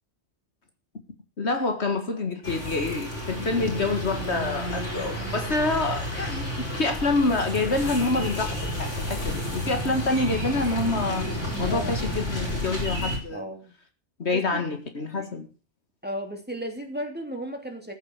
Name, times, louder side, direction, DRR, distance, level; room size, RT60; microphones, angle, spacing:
voice 1, 1.4-13.5 14.2-15.5, left 3 dB, 65° left, 2.1 m, -27 dB
sound 1, 2.4-13.2, equal, 90° left, 4.9 m, -31 dB
voice 2, 13.3-13.7 14.3-14.6 16.0-17.9, equal, 10° right, 3.1 m, -34 dB
14.5 x 8.1 x 8.1 m
omnidirectional pair, 1.2 m